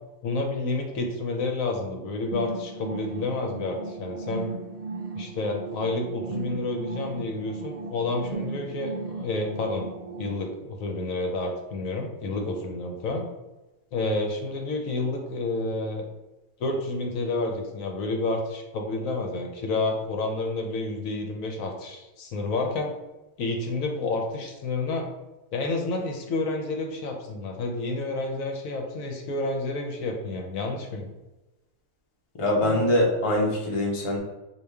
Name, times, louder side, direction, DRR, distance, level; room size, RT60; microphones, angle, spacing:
voice 1, 0.2-4.5 5.1-9.9 10.2-13.3 13.9-16.1 16.6-22.9 23.4-25.1 25.5-31.1, left 2 dB, 75° left, 2 dB, 1.0 m, -29 dB
sound 1, 2.3-10.3, right 4 dB, 65° right, 0.5 m, -36 dB
voice 2, 32.3-34.2, left 1 dB, 30° left, -1 dB, 0.6 m, -23 dB
4.8 x 2.4 x 3.4 m, 1.0 s
omnidirectional pair, 1.5 m